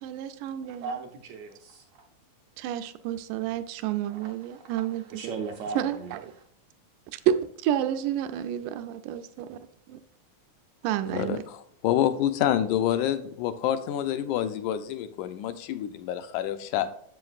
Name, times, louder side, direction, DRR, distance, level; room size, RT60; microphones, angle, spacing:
voice 1, 0.0-1.0 2.6-5.3 5.8-6.3 7.1-9.6 9.9-10.0 10.8-11.4, right 10 dB, 90° right, 2.2 m, -30 dB
voice 2, 0.8-1.9 4.1-6.4, right 5 dB, 75° right, 1.7 m, -38 dB
voice 3, 11.1-16.9, left 11 dB, 80° left, 2.0 m, -27 dB
7.7 x 7.7 x 2.4 m
omnidirectional pair, 3.6 m